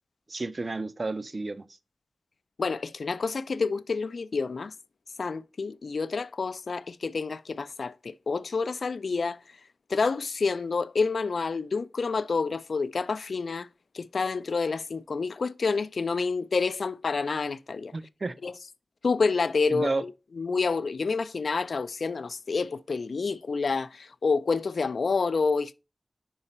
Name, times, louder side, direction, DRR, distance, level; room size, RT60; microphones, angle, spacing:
voice 1, 0.3-1.7 17.9-18.4 19.7-20.0, right 3 dB, 45° right, 0.4 m, -31 dB
voice 2, 2.6-4.7 5.2-9.4 9.9-13.7 13.9-17.9 18.4-18.5 19.0-20.1 20.4-25.7, left 4 dB, 75° left, 0.3 m, -28 dB
5.5 x 4.8 x 4.1 m
wide cardioid pair, 90°, 0 cm